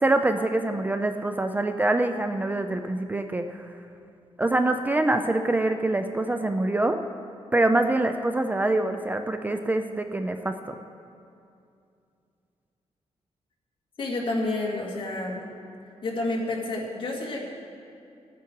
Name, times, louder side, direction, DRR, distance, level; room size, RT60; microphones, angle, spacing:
voice 1, 0.0-3.7 4.4-7.0 7.5-10.8, right 2 dB, 15° right, 7 dB, 0.4 m, -25 dB
voice 2, 14.0-15.4 16.0-17.4, left 2 dB, 50° left, -2 dB, 2.1 m, -29 dB
17.0 x 9.4 x 4.6 m, 2.6 s
wide cardioid pair, 135°, 11 cm